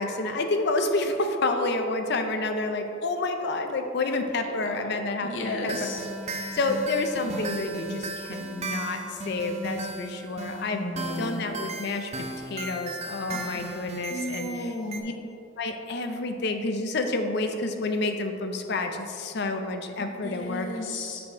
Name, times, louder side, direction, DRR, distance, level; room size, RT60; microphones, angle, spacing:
voice 1, 0.0-5.7 6.5-10.9 11.2-14.8 15.0-15.1 15.6-20.8, left 2 dB, 60° left, 6 dB, 0.5 m, -29 dB
voice 2, 4.4-6.1 10.7-11.4 13.3-13.8 14.1-15.0 20.0-21.2, left 2 dB, 75° left, 1 dB, 1.0 m, -34 dB
sound 1, 5.6-15.0, right 2 dB, 35° right, 0.6 m, -36 dB
6.9 x 5.2 x 4.5 m, 2.6 s
head